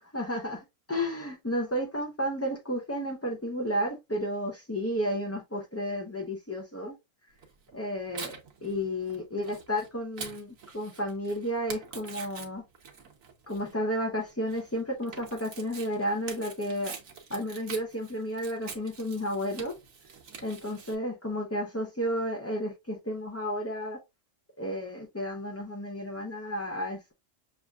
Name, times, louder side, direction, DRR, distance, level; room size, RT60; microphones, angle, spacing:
voice 1, 0.1-6.9 7.7-8.3 8.6-12.6 13.5-16.9 17.3-19.7 20.4-24.0 24.6-27.1, equal, 20° left, 0.4 m, -32 dB
Tearing, 7.4-20.9, right 6 dB, 85° right, 1.4 m, -45 dB
6.7 x 2.5 x 2.3 m
omnidirectional pair, 1.3 m